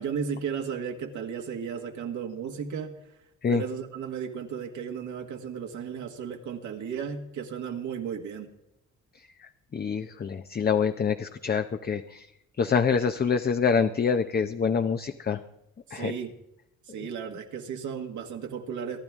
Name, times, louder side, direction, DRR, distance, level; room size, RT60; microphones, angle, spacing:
voice 1, 0.0-2.9 3.5-8.5 15.9-16.3 16.9-19.0, right 7 dB, 75° right, 2 dB, 1.7 m, -34 dB
voice 2, 9.4-12.3 12.6-15.4 15.9-16.1, left 6 dB, 30° left, 8 dB, 0.7 m, -26 dB
23.5 x 10.5 x 3.6 m, 0.86 s
cardioid pair, 90°, 30 cm